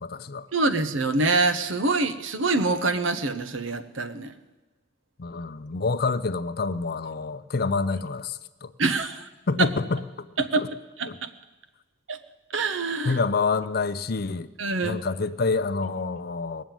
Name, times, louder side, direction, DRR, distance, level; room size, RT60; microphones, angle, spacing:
voice 1, 0.0-0.5 5.2-8.7 9.5-10.3 10.6-10.7 11.1-11.2 13.0-14.5 14.8-16.6, left 4 dB, 55° left, 0.6 m, -27 dB
voice 2, 0.5-4.3 8.8-9.3 9.6-9.7 10.4-10.7 11.0-11.3 12.1-12.2 12.5-13.2 14.6-15.0, right 3 dB, 80° right, 1.0 m, -25 dB
19.5 x 7.3 x 9.1 m
head